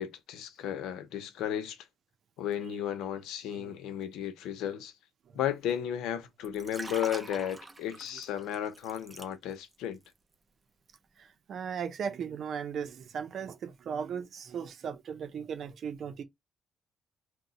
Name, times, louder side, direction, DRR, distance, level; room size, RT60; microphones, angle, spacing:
voice 1, 0.0-1.9 2.4-4.9 5.3-10.0, left 10 dB, 90° left, 0.6 m, -34 dB
Liquid, 6.4-9.8 10.1-10.3, right 2 dB, 20° right, 0.7 m, -44 dB
voice 2, 11.2-16.2, right 7 dB, 60° right, 0.6 m, -37 dB
2.7 x 2.2 x 3.9 m
cardioid pair, 90°, 0 cm